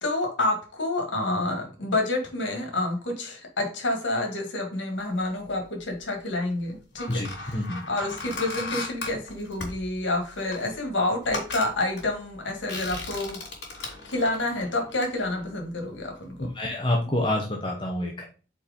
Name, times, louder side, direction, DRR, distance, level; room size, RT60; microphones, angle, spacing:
voice 1, 0.0-13.4 13.7-16.5, left 2 dB, 85° left, 2 dB, 1.8 m, -29 dB
sound 1, 5.5-6.1 6.7-16.1 16.4-16.6, left 3 dB, 70° left, 2.7 m, -38 dB
voice 2, 16.6-18.2, left 1 dB, 25° left, 0 dB, 0.8 m, -27 dB
4.8 x 4.3 x 5.0 m, 0.37 s
head